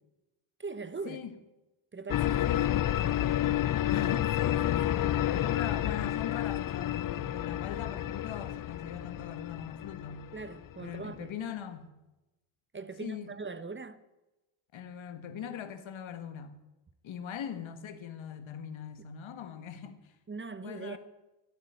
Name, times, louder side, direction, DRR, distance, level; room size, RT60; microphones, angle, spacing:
voice 1, 0.6-1.2 1.9-2.3 10.3-11.3 12.7-14.0 20.3-21.0, right 4 dB, 25° right, 0.9 m, -40 dB
sound 1, 2.1-11.0, left 12 dB, 45° left, 0.5 m, -30 dB
voice 2, 2.3-2.9 3.9-10.3 10.8-11.9 13.0-13.3 14.7-16.6 17.0-20.1 20.6-21.0, left 8 dB, 70° left, 1.7 m, -40 dB
15.5 x 8.1 x 8.4 m
cardioid pair, 95°, 48 cm